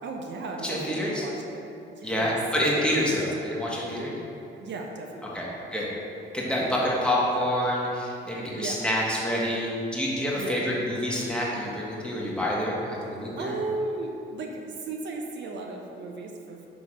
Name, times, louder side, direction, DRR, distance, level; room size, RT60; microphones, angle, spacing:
voice 1, 0.0-1.6 1.9-2.4 2.8-3.1 4.6-5.5 6.6-6.8 8.5-8.9 10.3-10.7 13.4-16.7, right 3 dB, 65° right, 1 dB, 0.6 m, -36 dB
voice 2, 0.6-1.2 2.0-4.1 5.3-5.9 6.3-12.8 13.0-13.6, equal, 5° left, -5 dB, 1.3 m, -27 dB
5.9 x 3.3 x 4.9 m, 2.7 s
cardioid pair, 90°, 20 cm